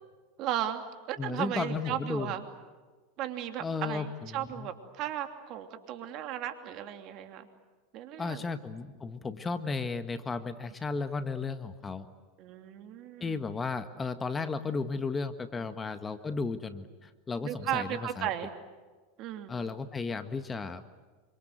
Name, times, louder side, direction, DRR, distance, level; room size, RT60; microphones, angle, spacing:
voice 1, 0.4-0.8 1.1-2.4 3.2-7.5 7.9-8.5 12.4-13.4 15.6-15.8 17.4-18.5 19.2-19.7, right 11 dB, 50° right, 7 dB, 2.9 m, -35 dB
voice 2, 1.2-2.3 3.6-4.1 4.3-4.7 8.2-12.1 13.2-18.3 19.5-20.9, left 4 dB, 20° left, 10 dB, 1.6 m, -34 dB
27.5 x 25.5 x 8.0 m, 1.4 s
hypercardioid pair, 90°, 0 cm